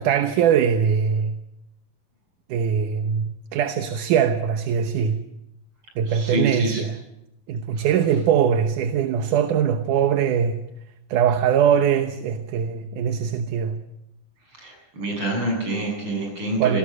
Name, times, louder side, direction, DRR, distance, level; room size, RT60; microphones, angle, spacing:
voice 1, 0.0-1.4 2.5-5.2 6.0-7.0 7.5-10.6 11.1-13.8 16.6-16.8, right 8 dB, 70° right, 2.5 m, -21 dB
voice 2, 6.1-6.8 14.6-16.8, right 1 dB, 35° right, 8.5 m, -27 dB
27.5 x 19.0 x 6.4 m
omnidirectional pair, 3.9 m